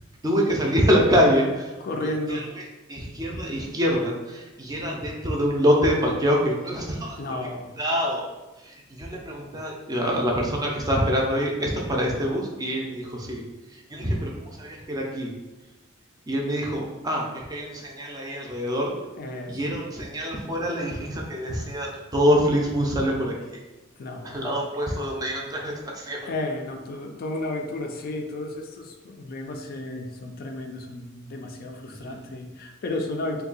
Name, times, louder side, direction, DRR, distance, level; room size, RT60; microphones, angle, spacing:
voice 1, 0.2-2.5 2.9-7.4 7.8-8.3 8.6-13.4 13.9-15.3 16.3-18.9 19.5-23.6 24.2-26.3 32.0-32.1, equal, 20° right, -1 dB, 0.5 m, -25 dB
voice 2, 1.8-2.5 7.2-7.7 19.2-19.8 24.0-24.6 26.3-33.4, left 2 dB, 45° left, 3 dB, 0.4 m, -33 dB
2.7 x 2.3 x 3.8 m, 1.1 s
head